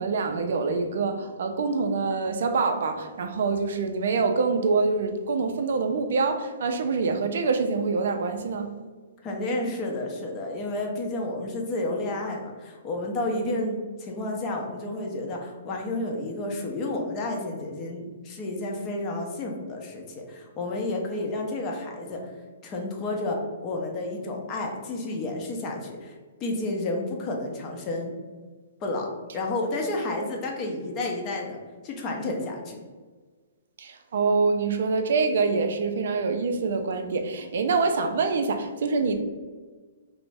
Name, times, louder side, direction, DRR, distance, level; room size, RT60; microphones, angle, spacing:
voice 1, 0.0-8.7 33.8-39.2, right 4 dB, 65° right, 7 dB, 0.3 m, -25 dB
voice 2, 9.2-22.2 22.6-26.1 26.4-28.1 28.8-29.1 29.3-31.6 31.8-32.8, left 2 dB, 30° left, 1 dB, 0.5 m, -31 dB
2.5 x 2.0 x 3.3 m, 1.4 s
hypercardioid pair, 135°, 0 cm